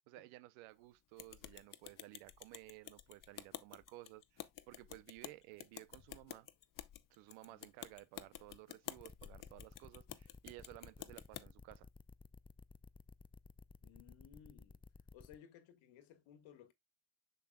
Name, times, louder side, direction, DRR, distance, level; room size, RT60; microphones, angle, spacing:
voice 1, 0.1-6.5 7.1-11.9, right 18 dB, 90° right, 0.8 m, -56 dB
sound 1, 1.2-11.5, left 11 dB, 45° left, 0.8 m, -51 dB
sound 2, 9.0-15.4, left 4 dB, 10° left, 0.4 m, -57 dB
voice 2, 13.8-14.8 15.1-16.7, left 9 dB, 80° left, 1.7 m, -60 dB
6.9 x 6.5 x 2.3 m
supercardioid pair, 75°, 47 cm